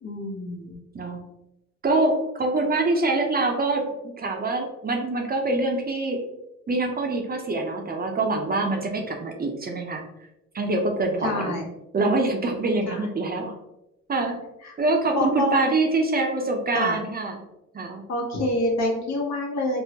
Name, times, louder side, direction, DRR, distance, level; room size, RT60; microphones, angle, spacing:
voice 1, 0.0-0.8 11.2-11.6 12.9-13.0 14.6-14.7 15.1-15.7 16.7-17.0 18.1-19.8, left 2 dB, 60° left, 0 dB, 0.9 m, -27 dB
voice 2, 0.9-1.3 1.8-6.3 6.7-10.0 10.5-11.6 11.9-13.5 14.1-14.4 14.8-17.4 17.7-18.0, right 2 dB, 30° right, 2 dB, 0.5 m, -25 dB
3.5 x 2.1 x 2.8 m, 0.89 s
cardioid pair, 90°, 30 cm